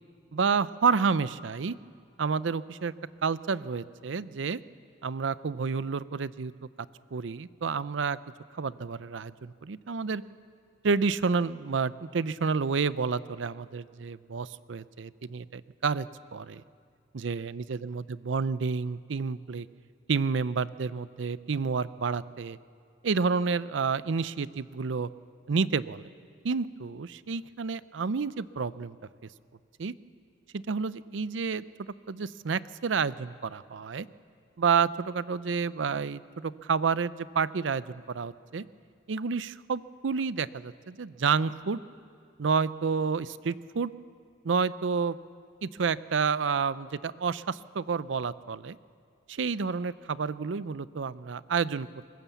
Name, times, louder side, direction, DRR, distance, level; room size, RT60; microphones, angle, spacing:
voice 1, 0.3-1.7 2.2-2.9 3.2-4.6 5.0-6.5 7.1-8.2 8.5-10.2 10.8-16.1 16.3-16.6 17.1-19.7 20.1-22.6 23.0-25.1 25.5-26.1 26.4-28.9 29.8-29.9 30.5-34.1 34.6-38.6 39.1-41.8 42.4-43.9 44.4-45.2 45.6-48.8 49.3-52.0, right 5 dB, 80° right, 17 dB, 0.5 m, -29 dB
23.0 x 20.0 x 7.1 m, 2.2 s
head